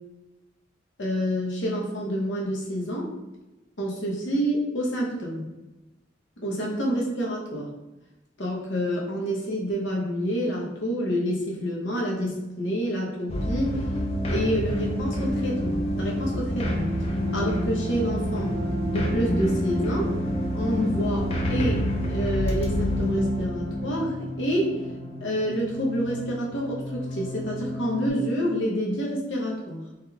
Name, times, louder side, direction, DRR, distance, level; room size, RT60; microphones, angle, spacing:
voice 1, 1.0-3.1 3.8-5.5 6.4-7.7 8.4-13.8 14.3-16.9 17.3-18.6 18.9-20.1 20.5-24.8 25.2-29.8, equal, 90° left, -2 dB, 0.8 m, -28 dB
sound 1, 13.3-28.1, equal, 35° left, 0.5 m, -28 dB
3.5 x 3.0 x 2.3 m, 1.0 s
head